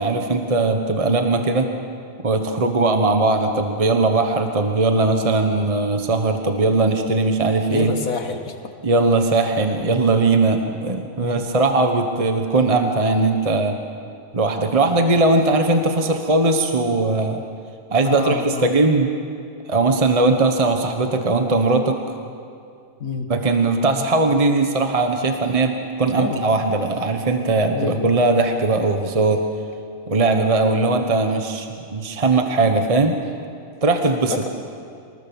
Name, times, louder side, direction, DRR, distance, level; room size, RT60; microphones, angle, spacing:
voice 1, 0.0-1.7 2.2-7.9 8.8-13.8 14.3-17.4 17.9-19.1 19.7-22.0 23.3-29.4 30.1-33.1 33.8-34.3, right 3 dB, 25° right, 5 dB, 1.2 m, -19 dB
voice 2, 7.7-8.5 11.2-11.3 18.0-18.7 23.0-23.3 26.1-26.5 27.7-28.1 34.3-34.5, left 4 dB, 80° left, 5 dB, 2.1 m, -27 dB
25.0 x 19.0 x 7.1 m, 2.3 s
omnidirectional pair, 1.4 m